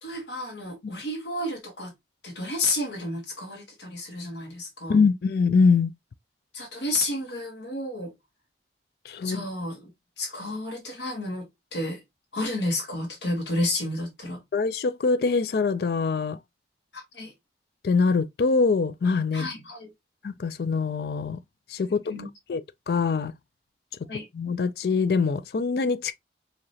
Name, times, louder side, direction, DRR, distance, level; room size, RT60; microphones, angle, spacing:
voice 1, 0.0-1.9 2.2-5.0 6.5-8.1 9.2-9.9 10.2-11.5 11.7-12.0 12.3-14.4 16.9-17.3 19.3-19.9 21.9-22.3 24.1-24.2, left 2 dB, 85° left, 1.6 m, -31 dB
voice 2, 4.9-5.9 9.1-9.5 14.5-16.4 17.8-19.5 20.2-21.4 21.7-22.0 22.5-22.6 22.9-23.3 24.3-26.1, left 4 dB, 60° left, 0.4 m, -23 dB
4.8 x 2.9 x 2.7 m
head